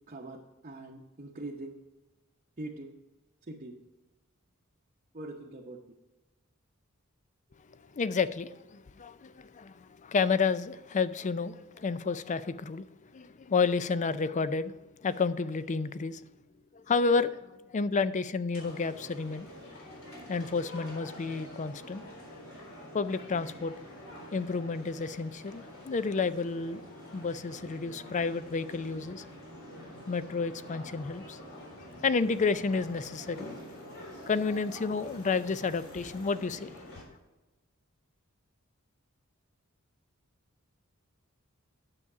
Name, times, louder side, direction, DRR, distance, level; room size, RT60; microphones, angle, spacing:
voice 1, 0.1-1.7 2.6-2.9 3.5-3.8 5.1-5.8, right 2 dB, 35° right, -1 dB, 0.8 m, -42 dB
voice 2, 7.7-16.2 16.7-19.5 20.3-22.1 22.9-23.7 24.3-26.8 27.1-29.2 29.7-29.8 30.1-31.6 32.0-33.5 34.3-37.0, left 4 dB, 35° left, 15 dB, 0.4 m, -31 dB
sound 1, 18.5-37.0, equal, 65° left, 3.8 m, -47 dB
9.7 x 7.1 x 4.8 m, 1.1 s
head